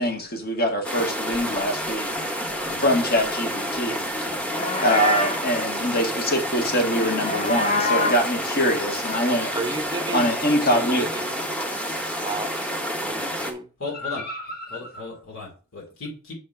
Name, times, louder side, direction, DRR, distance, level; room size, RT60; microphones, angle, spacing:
voice 1, 0.0-2.3 2.8-4.1 4.8-9.6 10.1-11.1 13.9-15.0, equal, 45° left, 1.8 m, -24 dB
sound 1, 0.8-13.5, equal, 5° left, 1.1 m, -29 dB
Livestock farm animals working animals, 4.4-5.5 6.8-8.3, left 2 dB, 30° left, 0.8 m, -26 dB
voice 2, 9.5-10.3 10.7-11.3 12.2-12.7 13.0-13.7 14.2-14.3, right 3 dB, 20° right, 0.6 m, -33 dB
voice 3, 13.8-14.2 14.7-16.3, left 3 dB, 70° left, 2.7 m, -36 dB
6.7 x 4.2 x 5.4 m
head